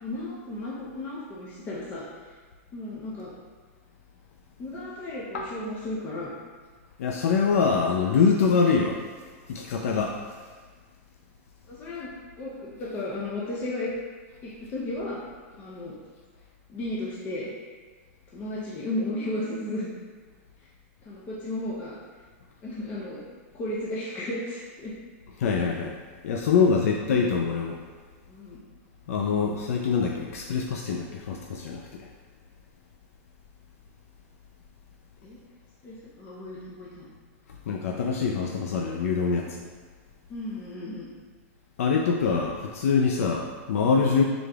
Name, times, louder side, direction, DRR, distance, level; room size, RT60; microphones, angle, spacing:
voice 1, 0.0-2.0 2.7-3.3 4.6-6.3 11.7-12.1 12.4-13.9 14.4-15.2 15.5-15.9 16.7-17.5 18.3-19.9 21.1-22.0 22.6-23.2 23.5-24.9 28.3-28.6 35.2-35.4 35.8-37.1 40.3-41.1, left 1 dB, 25° left, -6 dB, 0.5 m, -34 dB
voice 2, 7.0-9.0 9.5-10.1 25.4-25.9 26.2-27.8 29.1-31.8 37.7-39.6 41.8-44.2, left 5 dB, 80° left, 1 dB, 0.4 m, -24 dB
4.9 x 3.8 x 2.3 m, 1.5 s
supercardioid pair, 160°, 8 cm